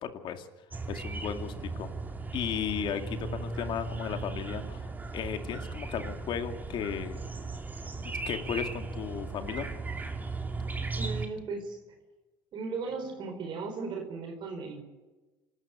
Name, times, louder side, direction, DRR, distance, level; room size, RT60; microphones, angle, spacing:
voice 1, 0.0-0.5 0.9-1.9 2.3-4.9 5.1-7.2 8.0-9.7, left 8 dB, 55° left, 7 dB, 2.3 m, -35 dB
sound 1, 0.7-11.3, right 3 dB, 15° right, 2.3 m, -37 dB
voice 2, 11.0-11.8 12.5-14.8, right 4 dB, 50° right, 4 dB, 4.4 m, -36 dB
26.5 x 13.5 x 8.6 m, 1.2 s
supercardioid pair, 90°, 10 cm